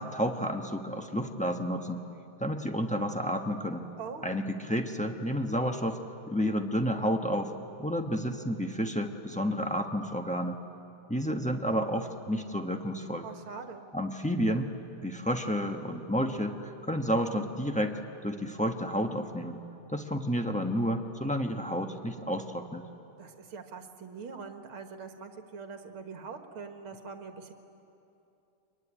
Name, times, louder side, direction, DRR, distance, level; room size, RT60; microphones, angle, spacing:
voice 1, 0.0-2.0 2.4-3.9 4.2-7.5 7.8-10.6 11.1-13.3 13.9-14.7 15.0-19.6 19.9-22.8, equal, 10° left, 3 dB, 0.4 m, -31 dB
voice 2, 4.0-4.5 13.2-13.9 23.2-27.5, right 5 dB, 75° right, 6 dB, 2.4 m, -43 dB
24.0 x 23.0 x 10.0 m, 2.8 s
omnidirectional pair, 2.3 m